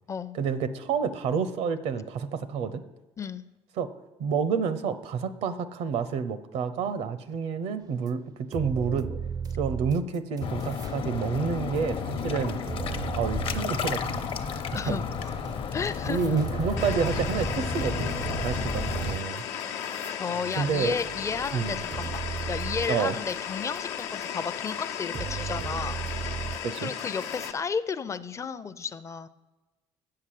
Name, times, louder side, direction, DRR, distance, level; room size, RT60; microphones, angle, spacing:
voice 1, 0.3-2.8 3.8-3.9 4.2-9.1 9.6-12.6 13.1-14.3 14.9-15.0 16.0-19.4 20.6-20.9 21.5-21.8 22.9-23.2 26.6-26.9, right 6 dB, 75° right, 13 dB, 0.7 m, -29 dB
sound 1, 8.1-8.2 8.5-10.9 11.3-14.6 15.4-15.5 15.9-23.4 23.7-24.3 24.7-24.8 25.1-27.5, right 7 dB, 35° right, 0.4 m, -36 dB
sound 2, 10.4-19.2, left 6 dB, 50° left, 0.9 m, -32 dB
voice 2, 14.7-15.3 15.7-16.2 16.8-16.9 20.2-26.0 26.8-29.3, left 5 dB, 25° left, 13 dB, 0.5 m, -33 dB
sound 3, 16.8-27.5, left 9 dB, 90° left, 0.9 m, -35 dB
8.2 x 6.7 x 7.5 m, 1.1 s
cardioid pair, 100°, 11 cm